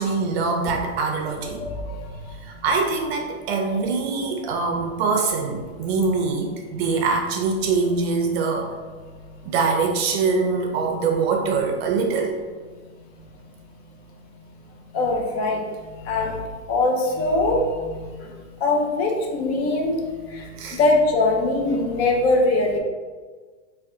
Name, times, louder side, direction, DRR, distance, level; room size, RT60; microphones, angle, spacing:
voice 1, 0.0-1.6 2.4-8.7 9.4-12.4 20.6-20.8, right 4 dB, 60° right, 3 dB, 0.4 m, -23 dB
voice 2, 14.9-15.6 16.1-16.4 16.7-18.1 18.6-20.0 20.3-22.8, left 2 dB, 55° left, 1 dB, 0.7 m, -22 dB
2.7 x 2.3 x 3.5 m, 1.5 s
supercardioid pair, 160°, 36 cm